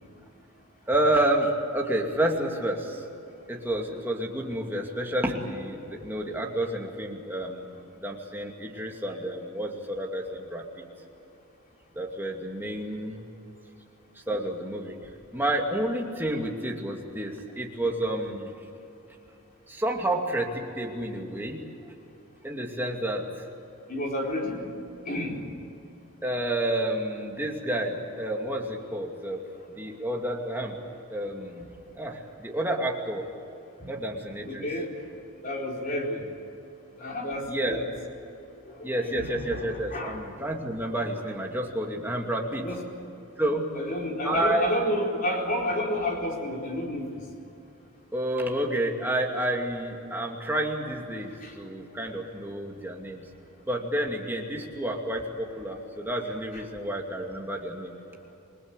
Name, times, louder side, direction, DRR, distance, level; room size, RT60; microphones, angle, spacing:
voice 1, 0.9-3.0 3.5-7.7 8.0-10.9 11.9-13.2 14.3-15.0 15.3-18.5 19.7-21.6 22.4-23.3 26.2-29.4 29.8-30.8 31.1-31.7 32.0-33.3 33.9-34.7 37.5-37.8 38.8-42.7 43.4-43.7 44.2-44.7 48.1-53.2 53.7-58.0, right 1 dB, 10° right, 0 dB, 2.6 m, -30 dB
voice 2, 23.9-24.7 25.0-25.4 33.8-33.9 34.4-34.9 35.4-36.3 37.0-37.9 38.7-40.3 42.6-42.8 43.7-47.1 51.4-51.5 56.5-56.6, left 1 dB, 40° left, 0 dB, 4.4 m, -30 dB
27.5 x 21.0 x 8.2 m, 2.8 s
head